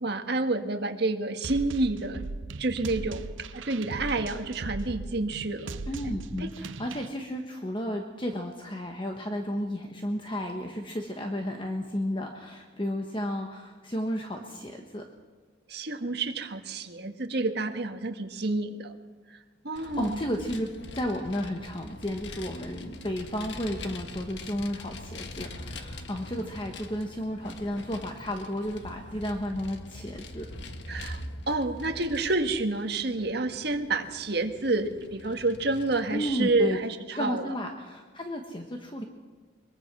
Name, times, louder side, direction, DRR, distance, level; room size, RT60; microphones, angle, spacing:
voice 1, 0.0-2.2 2.6-3.2 3.5-5.8 6.4-6.5 15.7-18.9 19.3-19.4 19.6-20.2 30.9-31.2 31.5-37.5, right 2 dB, 55° right, 6 dB, 1.7 m, -29 dB
sound 1, 1.4-7.1, right 3 dB, 85° right, 0.8 m, -38 dB
voice 2, 5.9-15.0 19.7-30.5 36.1-36.8 37.2-39.0, equal, 25° left, 3 dB, 1.4 m, -33 dB
Vehicle, 19.8-36.7, left 2 dB, 65° left, 1.5 m, -43 dB
23.0 x 22.5 x 6.2 m, 1.4 s
head